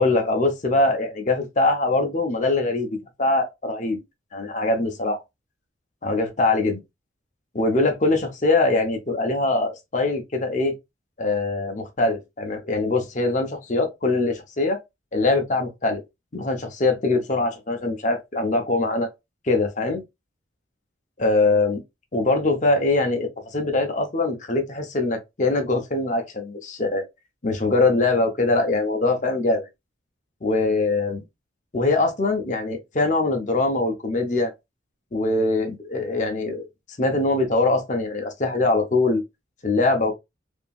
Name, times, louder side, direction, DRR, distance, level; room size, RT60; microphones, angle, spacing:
voice 1, 0.0-4.0 4.3-5.2 6.0-6.8 7.5-10.7 11.2-14.8 15.1-16.0 16.3-19.1 19.4-20.0 21.2-21.8 22.1-27.0 27.4-29.6 30.4-31.2 31.7-34.5 35.1-36.7 37.0-39.2 39.6-40.2, left 2 dB, 35° left, 0.6 m, -22 dB
2.9 x 2.6 x 2.3 m
head